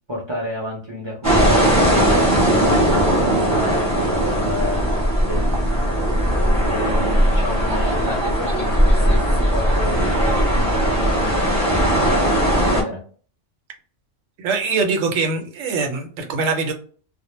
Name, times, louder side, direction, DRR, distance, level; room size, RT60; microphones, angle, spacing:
voice 1, 0.1-2.8 3.3-4.9 5.2-5.6 6.6-13.0, equal, 35° right, -4 dB, 0.4 m, -30 dB
sound 1, 1.2-12.8, equal, 15° right, 0.8 m, -18 dB
voice 2, 14.4-16.7, right 4 dB, 80° right, 4 dB, 0.9 m, -23 dB
2.1 x 2.1 x 3.0 m, 0.44 s
omnidirectional pair, 1.3 m